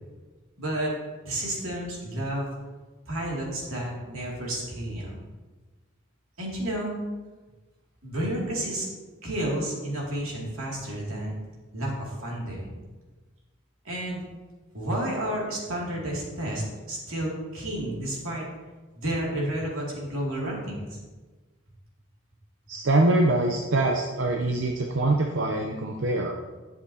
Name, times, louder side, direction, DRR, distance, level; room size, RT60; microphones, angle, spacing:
voice 1, 0.6-0.9 1.2-2.5 3.1-5.2 6.4-7.0 8.0-8.9 9.2-11.3 11.7-12.7 13.8-14.2 14.7-18.5 18.9-21.0, right 1 dB, 80° right, -3 dB, 2.5 m, -31 dB
voice 2, 22.7-26.4, right 2 dB, 60° right, 1 dB, 0.6 m, -24 dB
11.5 x 6.7 x 2.8 m, 1.3 s
head